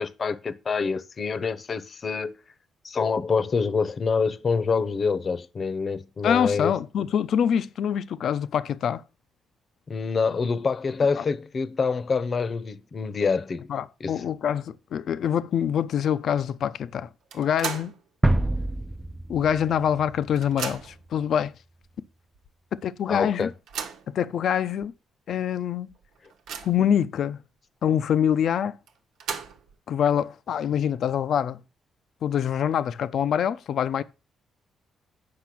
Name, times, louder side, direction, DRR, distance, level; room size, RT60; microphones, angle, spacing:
voice 1, 0.0-2.4 2.8-6.7 9.9-13.7 14.0-14.3 23.1-23.5, left 5 dB, 40° left, 0.9 m, -26 dB
voice 2, 6.2-9.0 11.2-11.3 13.7-17.1 17.3-17.9 19.3-21.5 22.8-23.5 24.1-24.9 25.3-25.9 26.6-27.4 27.8-28.8 29.9-31.6 32.2-34.0, left 9 dB, 65° left, 0.7 m, -25 dB
sound 1, 17.3-18.0 18.4-18.5 19.6-19.7 20.0-21.1 21.8-21.9 22.3-22.4 23.4-24.1 24.8-24.9 25.3-25.4 25.9-26.9 28.9-29.8, right 6 dB, 80° right, 1.2 m, -36 dB
sound 2, 18.2-21.1, right 1 dB, 10° right, 0.7 m, -27 dB
8.6 x 5.8 x 6.0 m
cardioid pair, 90°, 0 cm